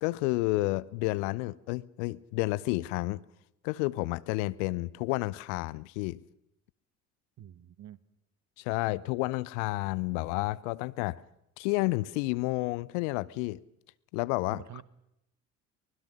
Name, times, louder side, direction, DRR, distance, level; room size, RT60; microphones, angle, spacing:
voice 1, 0.0-3.2 3.6-6.2 8.6-11.2 11.6-13.6 14.1-14.8, left 21 dB, 65° left, 0.7 m, -30 dB
voice 2, 7.4-8.0 14.5-14.8, right 12 dB, 45° right, 1.2 m, -47 dB
23.5 x 20.0 x 6.3 m
figure-of-eight pair, 50°, 40 cm